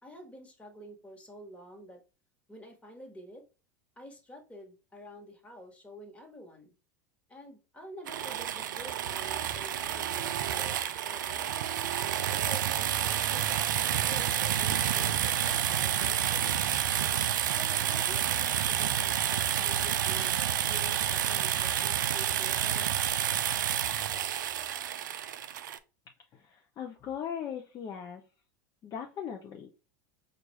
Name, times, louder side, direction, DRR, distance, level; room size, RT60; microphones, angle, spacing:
voice 1, 0.0-2.0 2.5-3.4 4.0-6.7 7.3-11.8 12.3-16.8 17.5-22.9, equal, 10° left, 2 dB, 1.5 m, -49 dB
sound 1, 8.1-25.8, right 10 dB, 75° right, 0.4 m, -29 dB
voice 2, 26.3-28.2 28.8-29.7, left 8 dB, 35° left, 2 dB, 0.6 m, -39 dB
4.6 x 2.5 x 3.2 m, 0.31 s
hypercardioid pair, 90°, 10 cm